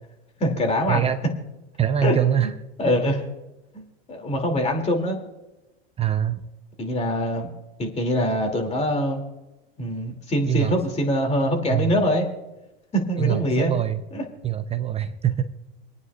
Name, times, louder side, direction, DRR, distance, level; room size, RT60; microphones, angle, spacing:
voice 1, 0.4-1.1 2.0-2.5 2.8-3.2 3.7-5.2 6.8-7.5 7.8-9.2 9.8-12.3 12.9-13.7 14.1-14.2, equal, 20° left, 3 dB, 2.7 m, -24 dB
voice 2, 1.8-2.5 2.8-3.0 6.0-6.4 10.5-10.7 11.7-11.9 13.2-14.0 14.4-15.4, right 10 dB, 20° right, 9 dB, 0.6 m, -23 dB
27.0 x 9.5 x 2.4 m, 1.0 s
hypercardioid pair, 110°, 32 cm